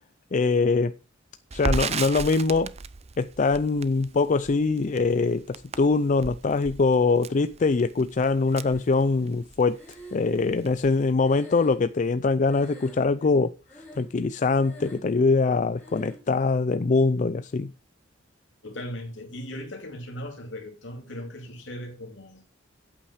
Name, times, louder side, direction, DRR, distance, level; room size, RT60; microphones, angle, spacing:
voice 1, 0.3-0.9 1.5-2.7 3.2-9.8 10.1-13.5 14.0-17.7, left 4 dB, 40° left, 0.4 m, -23 dB
Crackle, 1.5-9.6 9.9-10.0 10.3-11.1, right 4 dB, 35° right, 0.5 m, -34 dB
Breathing, 8.4-9.2 9.7-12.2 12.4-13.3 13.6-14.2 14.5-15.2 15.8-16.3, equal, 10° left, 4.4 m, -48 dB
voice 2, 18.6-22.4, equal, 70° left, 2.7 m, -38 dB
8.7 x 8.4 x 4.9 m
head